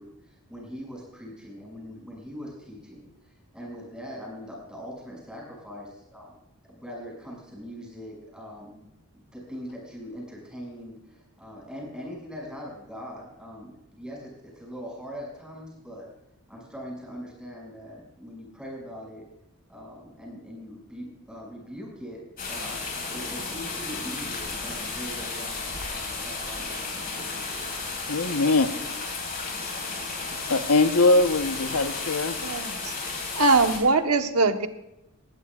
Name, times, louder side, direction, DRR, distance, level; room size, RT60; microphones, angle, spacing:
voice 1, 0.0-6.4 6.7-16.1 16.5-19.3 19.7-27.7, equal, 5° right, -2 dB, 6.3 m, -42 dB
sound 1, 22.4-33.8, left 4 dB, 45° left, 5.2 m, -33 dB
voice 2, 28.1-28.7 30.5-32.4, left 2 dB, 90° left, 8 dB, 1.0 m, -21 dB
voice 3, 32.4-32.9 33.3-34.7, right 3 dB, 80° right, 6 dB, 1.2 m, -22 dB
19.0 x 16.0 x 2.4 m, 0.89 s
head